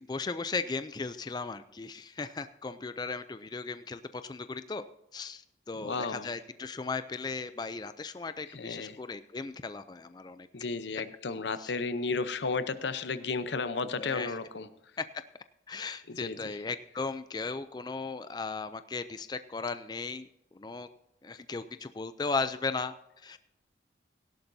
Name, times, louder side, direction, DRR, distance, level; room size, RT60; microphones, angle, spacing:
voice 1, 0.0-4.8 5.1-10.5 11.6-11.7 13.9-14.4 15.0-15.1 15.7-20.9 21.2-23.4, left 4 dB, 25° left, 11 dB, 0.4 m, -36 dB
voice 2, 5.8-6.3 8.5-9.0 10.5-14.7 16.1-16.5, left 4 dB, 80° left, 12 dB, 0.8 m, -33 dB
17.0 x 11.5 x 2.7 m, 0.86 s
head